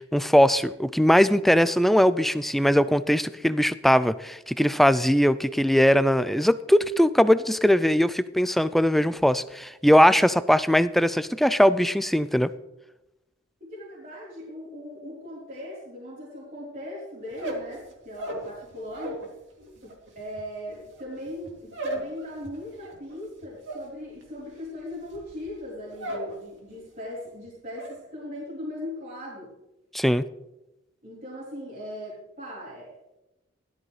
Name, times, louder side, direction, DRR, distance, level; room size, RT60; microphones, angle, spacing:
voice 1, 0.0-12.5 29.9-30.2, equal, ahead, 14 dB, 0.3 m, -20 dB
voice 2, 13.6-19.2 19.8-29.5 31.0-32.9, left 1 dB, 45° right, -8 dB, 3.9 m, -39 dB
sound 1, 17.3-19.3 19.6-26.4 26.7-27.2 27.5-28.0, right 2 dB, 65° right, 2.9 m, -37 dB
16.0 x 12.5 x 3.2 m, 0.95 s
head